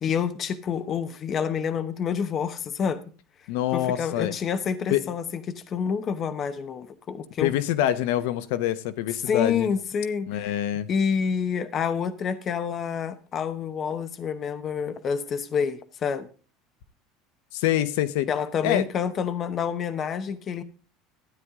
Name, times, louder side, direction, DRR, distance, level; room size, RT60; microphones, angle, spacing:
voice 1, 0.0-3.0 3.7-7.5 9.3-10.6 10.9-16.3 18.3-20.6, left 7 dB, 25° left, 11 dB, 0.9 m, -28 dB
voice 2, 3.5-4.3 4.9-5.0 7.4-9.7 10.3-10.9 17.5-18.3 18.6-18.8, left 12 dB, 70° left, 14 dB, 1.0 m, -25 dB
13.0 x 9.7 x 3.6 m, 0.35 s
cardioid pair, 170°, 0 cm